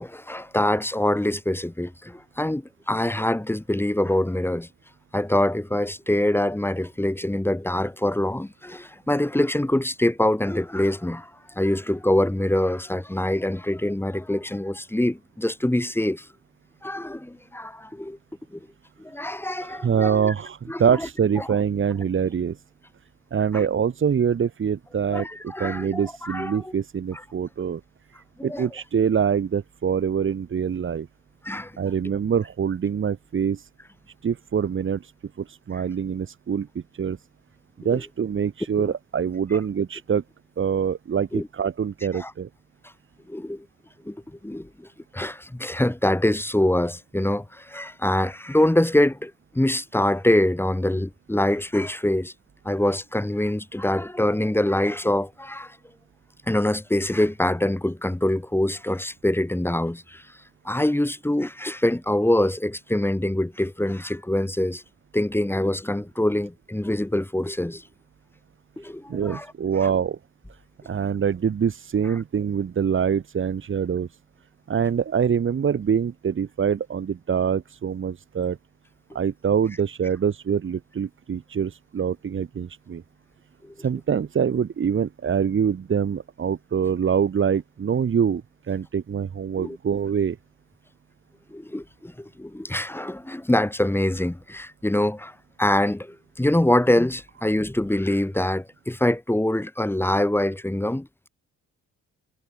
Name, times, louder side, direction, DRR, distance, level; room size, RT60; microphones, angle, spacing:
voice 1, 0.0-4.7 5.1-16.3 16.8-18.2 18.5-18.6 19.0-20.3 20.7-21.1 21.4-21.5 23.5-23.7 25.1-26.7 28.4-28.7 31.4-31.7 37.9-38.0 38.8-38.9 39.5-39.6 41.3-41.5 42.1-42.3 43.3-43.6 44.0-44.2 44.4-52.3 52.6-55.8 56.5-60.2 60.6-64.8 65.1-67.8 68.8-69.5 69.8-69.9 83.6-83.7 89.6-89.8 91.5-101.1, left 1 dB, 5° left, 3.1 m, -24 dB
voice 2, 19.6-22.6 23.3-27.8 28.1-31.1 31.8-33.7 34.2-35.1 35.4-37.2 37.8-40.2 40.6-42.5 69.1-70.2 70.8-74.2 74.7-78.6 79.1-83.0 83.8-90.4, right 7 dB, 40° right, 1.7 m, -25 dB
cardioid pair, 90°, 30 cm